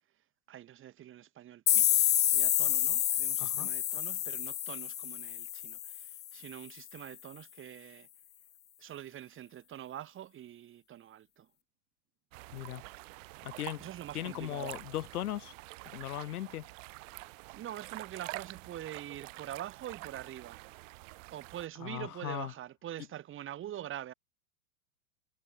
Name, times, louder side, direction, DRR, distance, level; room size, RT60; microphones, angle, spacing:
voice 1, 0.5-8.1 8.8-11.5 13.8-14.7 17.5-20.7 21.3-24.1, right 12 dB, 30° right, 2.0 m, -45 dB
sound 1, 1.7-6.3, left 11 dB, 25° left, 1.1 m, -29 dB
voice 2, 3.4-3.7 12.5-12.8 13.4-13.8 14.1-15.5 15.9-16.7 21.8-22.5, left 13 dB, 80° left, 2.7 m, -38 dB
sound 2, 12.3-21.7, right 23 dB, 60° right, 3.0 m, -47 dB
supercardioid pair, 130°, 44 cm